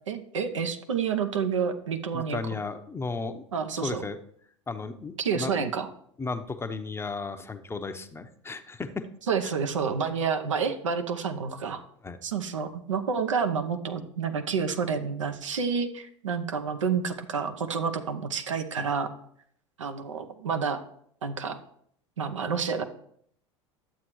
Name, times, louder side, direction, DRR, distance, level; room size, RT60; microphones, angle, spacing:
voice 1, 0.1-2.4 3.5-4.0 5.2-5.9 9.3-11.8 12.2-19.1 19.8-20.8 21.2-21.6 22.2-22.8, right 6 dB, 85° right, 6 dB, 0.8 m, -29 dB
voice 2, 2.1-3.4 3.7-4.2 4.7-5.5 6.2-9.0 9.4-9.5 12.0-12.2, left 4 dB, 15° left, 8 dB, 0.7 m, -34 dB
11.5 x 7.5 x 3.1 m, 0.66 s
hypercardioid pair, 80°, 16 cm